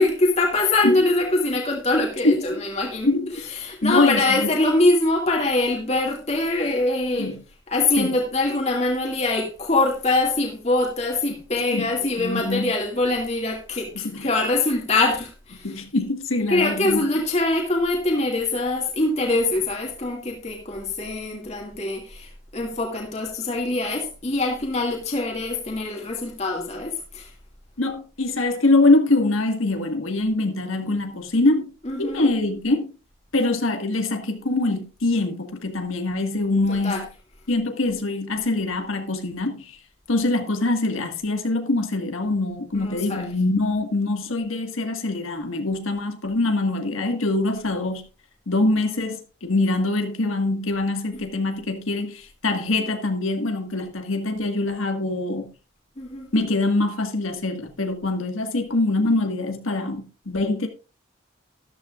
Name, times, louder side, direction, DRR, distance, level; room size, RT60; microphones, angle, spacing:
voice 1, 0.0-3.1 3.5-7.4 7.7-15.8 16.5-22.3 22.5-27.3 31.9-32.3 36.7-37.0 42.7-43.2 56.0-56.3, left 2 dB, 35° left, 2.2 m, -23 dB
voice 2, 2.2-2.6 3.1-3.3 3.8-4.5 7.2-7.4 8.0-8.1 11.7-12.8 14.0-14.3 15.6-17.1 27.8-31.7 32.0-32.9 33.3-37.1 37.5-39.8 40.1-48.0 48.5-55.5 56.3-60.7, left 2 dB, 85° left, 1.8 m, -24 dB
13.5 x 12.0 x 2.5 m
head